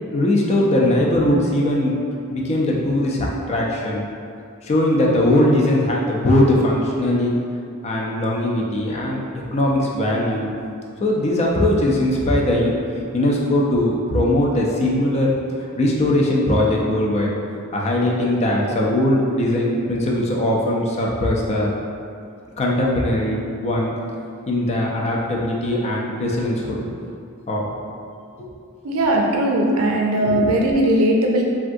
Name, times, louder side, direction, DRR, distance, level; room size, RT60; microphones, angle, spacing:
voice 1, 0.1-2.0 2.3-4.1 4.6-7.4 7.8-9.2 9.5-10.5 11.0-12.8 13.1-15.3 15.8-17.3 17.7-21.7 22.6-23.9 24.5-26.8 27.5-27.7 28.4-28.5 30.2-30.5, left 1 dB, 30° left, -2 dB, 0.4 m, -20 dB
voice 2, 28.8-31.4, right 1 dB, 80° right, 0 dB, 0.5 m, -18 dB
3.4 x 2.3 x 2.6 m, 2.4 s
head